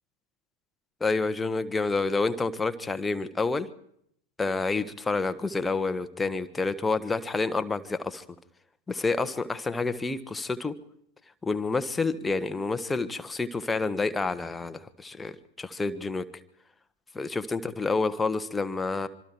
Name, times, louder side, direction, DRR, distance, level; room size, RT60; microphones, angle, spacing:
voice 1, 1.0-3.7 4.4-8.2 8.9-10.8 11.4-16.3 17.1-19.1, left 3 dB, 10° left, 10 dB, 1.4 m, -28 dB
25.5 x 25.5 x 4.6 m, 0.71 s
figure-of-eight pair, 90°, 0 cm